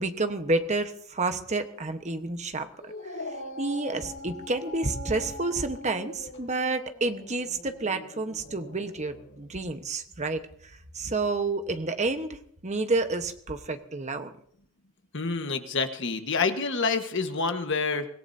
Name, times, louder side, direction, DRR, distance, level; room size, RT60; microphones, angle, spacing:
voice 1, 0.0-3.2 3.6-10.4 10.9-12.4 12.6-14.3, right 3 dB, 35° right, 8 dB, 1.2 m, -29 dB
Dog, 2.8-9.4, left 2 dB, 80° left, 4.9 m, -42 dB
voice 2, 15.1-18.1, left 4 dB, 60° left, 6 dB, 1.5 m, -27 dB
25.0 x 18.0 x 2.8 m, 0.63 s
head